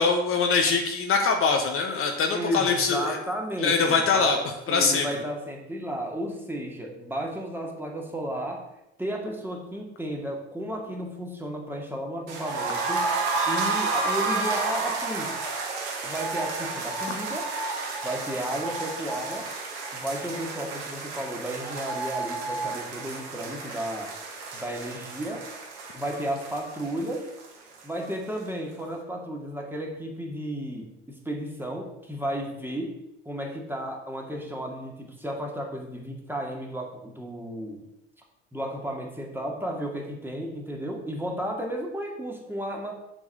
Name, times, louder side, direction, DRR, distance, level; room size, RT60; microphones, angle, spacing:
voice 1, 0.0-3.2 3.6-4.4 4.7-5.0, left 5 dB, 40° left, 3 dB, 1.3 m, -23 dB
voice 2, 2.3-4.4 4.7-8.6 9.0-13.1 13.5-15.4 16.0-17.5 18.0-19.5 19.9-24.2 24.5-25.5 25.9-27.3 27.8-33.0 33.3-37.9 38.5-42.9, right 1 dB, 5° right, 0 dB, 2.2 m, -33 dB
sound 1, 12.3-28.1 28.4-28.5 28.8-28.9, right 3 dB, 75° right, 2.1 m, -31 dB
7.3 x 4.7 x 6.9 m, 0.85 s
hypercardioid pair, 75°, 32 cm